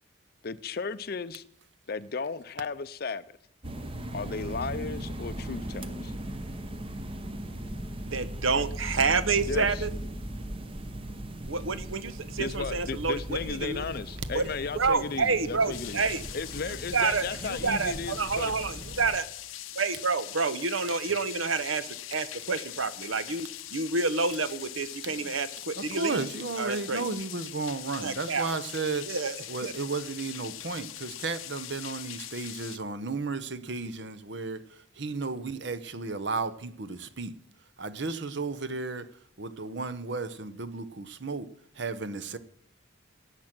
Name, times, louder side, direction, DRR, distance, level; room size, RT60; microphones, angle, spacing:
voice 1, 0.4-1.4 1.9-3.4 4.1-6.1 9.5-9.8 12.4-16.0 16.3-18.5, left 4 dB, 50° left, 0.5 m, -35 dB
sound 1, 3.6-19.2, right 1 dB, 25° right, 0.8 m, -38 dB
voice 2, 8.0-9.9 11.5-13.9 14.3-14.5 14.7-16.2 16.6-19.3 19.7-26.3 26.6-27.0 28.0-28.5 29.1-29.4 29.6-29.7, right 4 dB, 85° right, 1.0 m, -29 dB
sound 2, 15.7-32.8, left 13 dB, 90° left, 0.7 m, -42 dB
voice 3, 25.9-29.1 29.5-34.6 35.0-37.3 37.8-39.1 39.4-41.5 41.8-42.4, right 4 dB, 60° right, 0.8 m, -33 dB
17.0 x 7.5 x 6.1 m
head